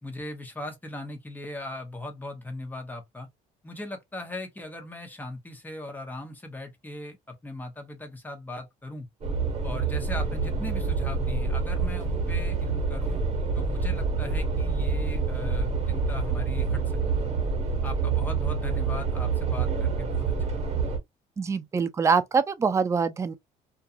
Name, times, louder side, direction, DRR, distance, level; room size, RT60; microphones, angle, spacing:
voice 1, 0.0-3.3 3.6-9.1 9.6-13.2 13.6-17.0 17.3-17.4 17.8-20.7, left 2 dB, 10° left, 0.9 m, -39 dB
sound 1, 9.2-21.0, right 4 dB, 40° right, 1.2 m, -27 dB
voice 2, 21.4-23.3, right 5 dB, 15° right, 0.4 m, -24 dB
2.4 x 2.3 x 2.6 m
cardioid pair, 110°, 17 cm